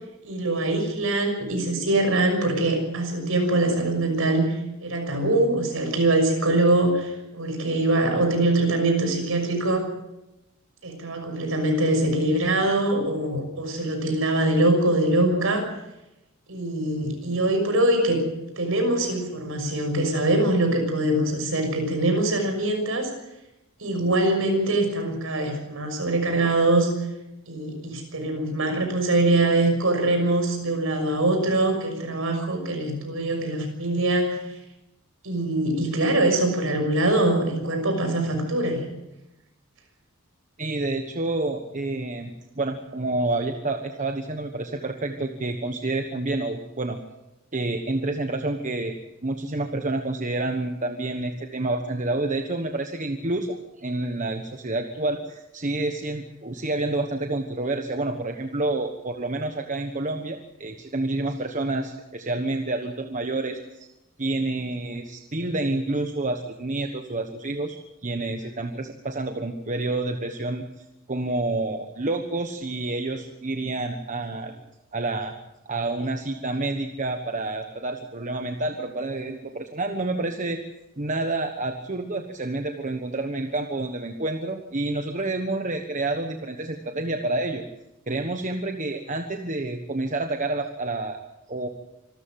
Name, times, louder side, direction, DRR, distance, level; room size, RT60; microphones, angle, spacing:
voice 1, 0.2-4.6 4.8-9.9 10.8-15.6 16.5-18.3 18.6-23.1 23.8-26.9 27.5-34.4 35.2-38.8, right 2 dB, 70° right, 5 dB, 6.2 m, -23 dB
voice 2, 40.6-47.0 47.5-63.9 64.2-74.6 74.9-75.3 75.6-80.6 81.0-87.6 88.1-91.2 91.5-91.7, right 2 dB, 35° right, 5 dB, 1.3 m, -29 dB
26.0 x 13.5 x 7.7 m, 0.93 s
head